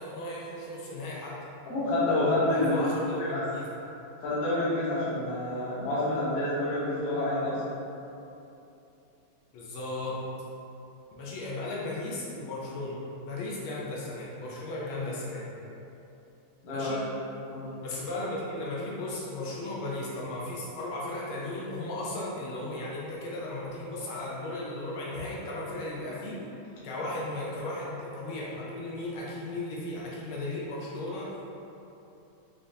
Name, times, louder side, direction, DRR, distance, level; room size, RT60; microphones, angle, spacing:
voice 1, 0.0-1.3 2.5-3.7 9.5-10.2 11.2-13.0 13.2-15.5 16.7-17.0 17.8-26.4 26.8-31.3, left 2 dB, 85° left, -6 dB, 1.5 m, -35 dB
voice 2, 1.7-2.7 3.2-3.4 4.2-7.6 16.6-16.9 17.5-17.7, left 1 dB, 55° left, -9 dB, 1.3 m, -28 dB
5.1 x 2.5 x 2.7 m, 2.8 s
omnidirectional pair, 2.3 m